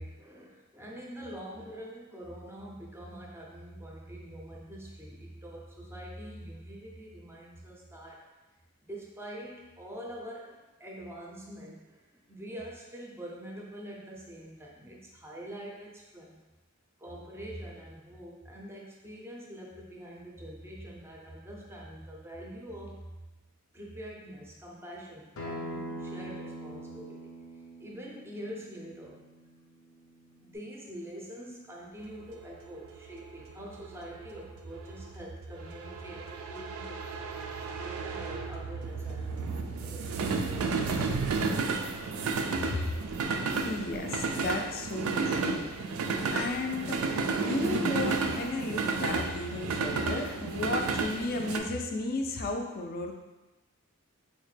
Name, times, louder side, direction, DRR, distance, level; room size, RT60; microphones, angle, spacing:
voice 1, 0.0-8.3 8.9-16.4 17.0-23.1 23.7-27.3 27.8-29.2 30.4-37.0 37.8-40.8, equal, 10° right, -2 dB, 0.5 m, -45 dB
Acoustic guitar, 25.4-30.6, right 1 dB, 80° left, 0.7 m, -43 dB
sound 1, 32.1-51.6, right 4 dB, 90° right, 0.3 m, -32 dB
voice 2, 43.3-45.9 46.3-47.0 47.4-53.1, left 2 dB, 45° left, 3 dB, 0.4 m, -34 dB
4.0 x 2.1 x 3.2 m, 1.1 s
head